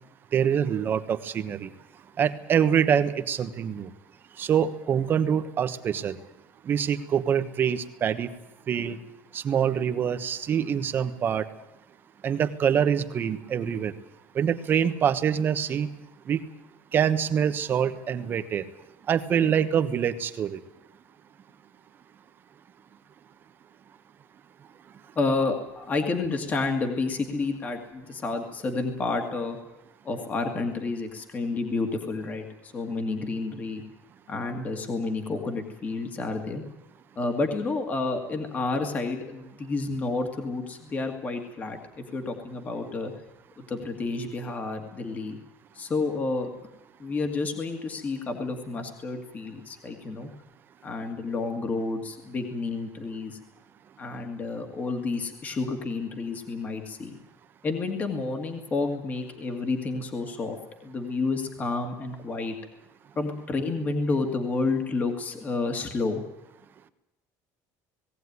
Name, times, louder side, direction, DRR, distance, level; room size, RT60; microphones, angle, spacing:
voice 1, 0.3-1.7 2.2-3.9 4.4-6.2 6.7-8.3 8.7-9.0 9.3-11.4 12.2-13.9 14.3-15.9 16.3-16.4 16.9-18.6 19.1-20.6, right 8 dB, 25° right, 10 dB, 1.2 m, -25 dB
voice 2, 25.2-29.6 30.0-33.8 34.3-36.6 37.2-43.1 43.6-45.4 45.7-46.5 47.0-50.3 50.8-53.4 54.0-57.2 57.6-60.6 60.8-62.5 63.2-66.2, left 3 dB, 20° left, 5 dB, 2.1 m, -30 dB
19.0 x 17.5 x 9.6 m, 0.94 s
cardioid pair, 180°, 8 cm